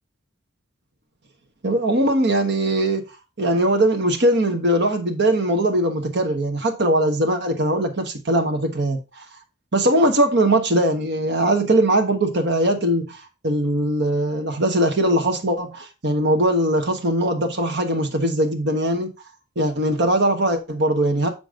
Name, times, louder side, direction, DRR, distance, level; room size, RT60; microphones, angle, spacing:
voice 1, 1.6-3.0 3.4-9.2 9.7-13.2 13.4-19.1 19.6-21.3, right 1 dB, 55° right, 1.3 m, -20 dB
7.0 x 5.2 x 3.7 m
head